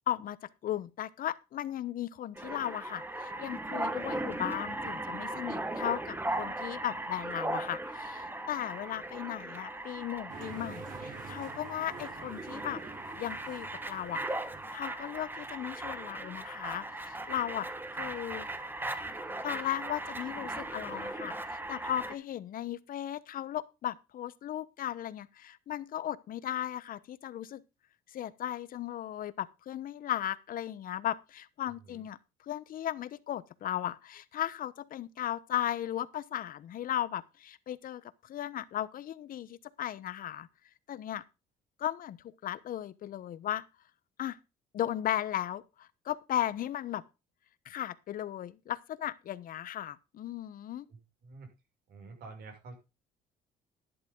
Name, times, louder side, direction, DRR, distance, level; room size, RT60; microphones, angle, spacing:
voice 1, 0.1-0.4 0.6-12.8 13.2-14.2 14.7-18.5 19.1-27.6 28.1-32.2 32.5-40.5 40.9-41.2 41.8-43.7 44.2-44.4 44.7-47.0 47.6-50.8, left 11 dB, 55° left, 1.0 m, -36 dB
sound 1, 2.4-22.2, right 2 dB, 10° right, 1.5 m, -38 dB
sound 2, 10.3-15.1, right 5 dB, 55° right, 3.6 m, -48 dB
voice 2, 50.9-51.5 51.9-52.8, right 3 dB, 70° right, 6.4 m, -48 dB
12.0 x 10.5 x 3.8 m
cardioid pair, 110°, 17 cm